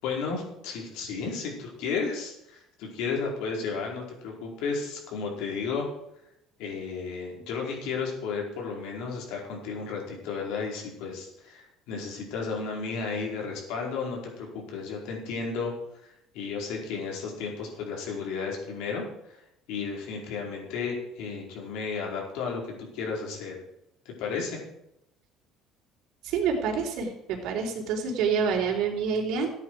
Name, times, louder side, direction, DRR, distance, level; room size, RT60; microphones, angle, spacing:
voice 1, 0.0-5.9 6.6-15.7 16.0-19.4 19.7-23.6 24.0-24.6, left 5 dB, 80° left, -1 dB, 4.9 m, -33 dB
voice 2, 26.2-29.5, right 6 dB, 65° right, 0 dB, 3.8 m, -27 dB
15.0 x 9.8 x 4.9 m, 0.79 s
cardioid pair, 150°, 0 cm